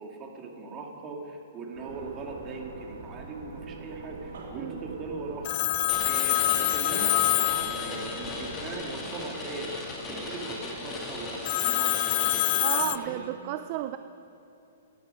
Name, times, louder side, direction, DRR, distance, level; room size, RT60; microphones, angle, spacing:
voice 1, 0.0-9.7 10.1-13.3, right 3 dB, 25° right, 1 dB, 2.1 m, -40 dB
sound 1, 1.7-8.8, right 3 dB, 75° right, 2.8 m, -43 dB
Telephone, 5.4-8.5 11.4-13.0, left 17 dB, 45° left, 0.4 m, -26 dB
sound 2, 5.9-13.1, left 2 dB, 20° left, 2.5 m, -37 dB
voice 2, 12.6-14.0, right 13 dB, 40° right, 10 dB, 0.5 m, -32 dB
17.0 x 10.5 x 5.4 m, 2.7 s
hypercardioid pair, 140°, 0 cm